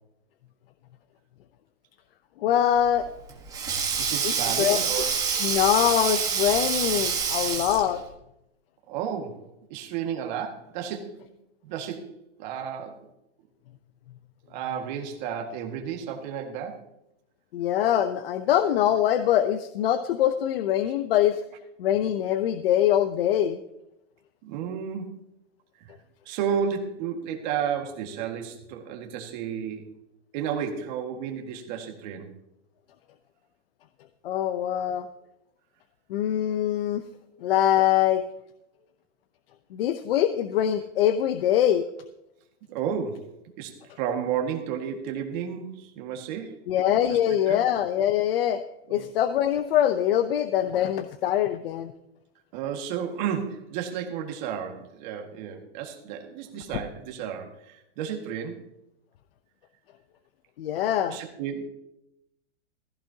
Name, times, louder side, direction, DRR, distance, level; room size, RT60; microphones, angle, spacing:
voice 1, 2.4-3.1 4.2-4.3 4.6-4.8 5.4-8.0 17.5-21.4 21.8-23.6 34.2-35.1 36.1-37.0 37.4-38.2 39.7-41.8 46.7-48.6 48.9-51.9 60.6-61.2, left 11 dB, 50° left, 10 dB, 0.7 m, -23 dB
Sink (filling or washing), 2.9-8.0, right 6 dB, 10° right, 1.3 m, -27 dB
voice 2, 4.0-5.2 8.9-11.3 11.6-12.1 12.4-13.1 14.5-16.8 24.4-25.2 26.3-29.9 30.3-32.3 42.7-43.3 43.6-46.6 47.1-47.2 47.5-47.6 48.9-49.1 52.5-58.6 61.1-61.7, right 8 dB, 35° right, 3 dB, 1.8 m, -32 dB
15.0 x 14.5 x 2.8 m, 0.83 s
supercardioid pair, 160°, 37 cm